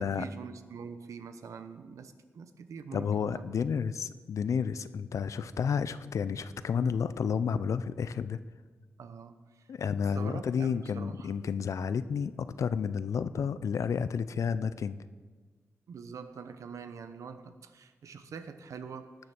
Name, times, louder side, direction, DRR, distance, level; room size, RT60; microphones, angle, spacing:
voice 1, 0.0-3.5 9.0-9.7 10.1-11.3 15.9-19.2, right 6 dB, 90° right, 10 dB, 0.9 m, -44 dB
voice 2, 2.9-8.4 9.7-15.1, left 6 dB, 80° left, 14 dB, 0.5 m, -31 dB
19.0 x 6.6 x 6.0 m, 1.4 s
wide cardioid pair, 95°, 5 cm